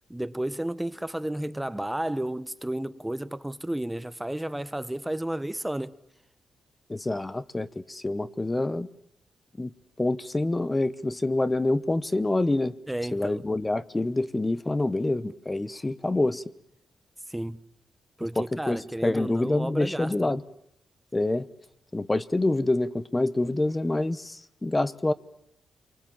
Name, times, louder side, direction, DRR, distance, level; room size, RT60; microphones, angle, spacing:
voice 1, 0.1-6.0 12.9-13.4 17.3-17.6 18.2-20.4, right 1 dB, 10° right, 1.0 m, -32 dB
voice 2, 6.9-8.9 9.6-9.7 10.0-12.7 13.1-16.4 18.4-20.4 21.1-21.4 21.9-25.1, left 2 dB, 20° left, 1.0 m, -26 dB
28.0 x 24.5 x 7.3 m
cardioid pair, 80°, 0 cm